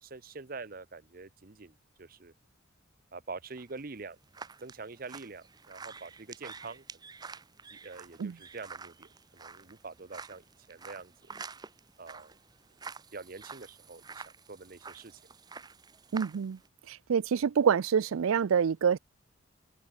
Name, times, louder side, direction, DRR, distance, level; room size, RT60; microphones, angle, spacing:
voice 1, 0.0-2.3 3.1-4.2 4.6-6.8 7.7-11.1 12.0-12.4 13.1-15.2, right 4 dB, 45° right, 0.9 m, -45 dB
sound 1, 3.5-16.7, right 5 dB, 20° right, 0.6 m, -48 dB
voice 2, 16.1-16.6 16.9-19.0, right 7 dB, 90° right, 0.4 m, -26 dB
open air
head